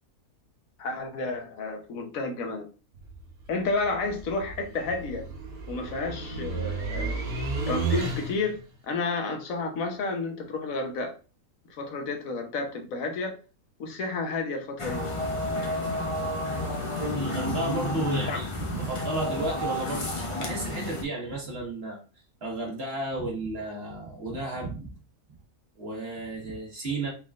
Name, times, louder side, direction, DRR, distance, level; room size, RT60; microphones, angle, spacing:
voice 1, 0.8-2.7 3.5-5.3 5.7-7.2 7.7-8.5 8.8-11.2 11.8-13.4 13.8-15.0 18.3-18.4, left 3 dB, 70° left, 1.3 m, -31 dB
sound 1, 2.9-8.6, right 4 dB, 80° right, 1.4 m, -33 dB
sound 2, 14.8-21.0, left 1 dB, 30° left, 0.7 m, -31 dB
voice 2, 17.1-22.0 22.4-24.9 25.8-27.1, right 2 dB, 45° right, 1.6 m, -33 dB
4.3 x 4.0 x 2.4 m
omnidirectional pair, 1.5 m